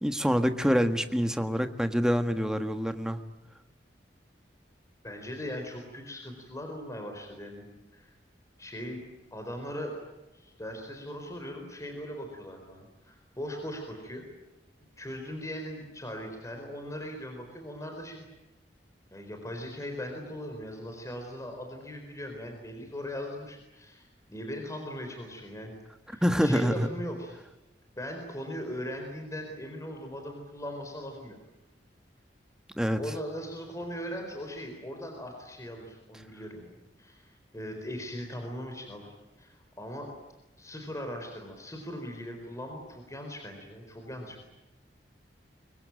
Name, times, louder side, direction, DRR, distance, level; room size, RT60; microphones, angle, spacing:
voice 1, 0.0-3.2 26.2-26.9 32.7-33.0, equal, 5° right, 8 dB, 1.6 m, -26 dB
voice 2, 5.0-7.7 7.9-8.1 8.6-10.0 10.3-14.3 15.0-18.3 19.1-25.7 26.1-27.4 28.0-31.4 33.0-39.1 39.4-40.1 40.6-44.4, equal, 20° left, 3 dB, 4.3 m, -39 dB
24.0 x 23.5 x 9.0 m, 1.0 s
head